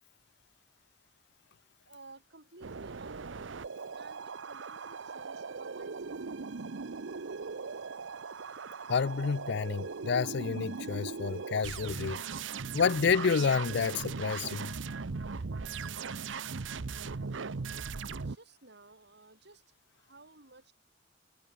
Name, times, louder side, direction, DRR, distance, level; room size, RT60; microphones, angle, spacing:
voice 1, 1.8-3.5 3.9-6.6 18.1-19.6 19.9-20.7, right 2 dB, 60° right, 4.9 m, -55 dB
sound 1, 2.6-18.4, right 5 dB, 80° right, 0.7 m, -39 dB
voice 2, 8.9-12.2 12.7-14.7, left 6 dB, 65° left, 0.5 m, -29 dB
head